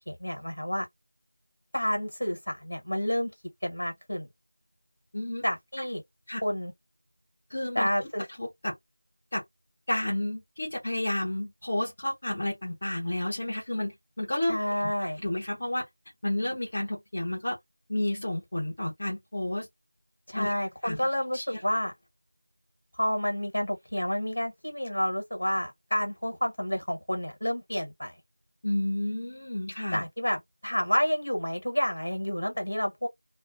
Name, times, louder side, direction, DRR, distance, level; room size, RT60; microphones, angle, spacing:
voice 1, 0.1-0.9 1.7-3.3 3.6-4.3 5.4-6.0 6.4-6.7 7.7-8.2 14.5-15.2 20.3-21.9 23.0-28.1 29.9-33.1, equal, 70° left, 1.4 m, -29 dB
voice 2, 5.1-5.4 5.8-5.9 6.3-6.4 7.5-7.9 8.4-8.7 9.3-9.4 9.9-15.8 16.2-17.6 17.9-19.7 20.3-20.5 20.8-21.0 21.3-21.6 28.6-30.0, left 1 dB, 30° left, 1.0 m, -31 dB
2.3 x 2.2 x 2.6 m
figure-of-eight pair, 175°, 0 cm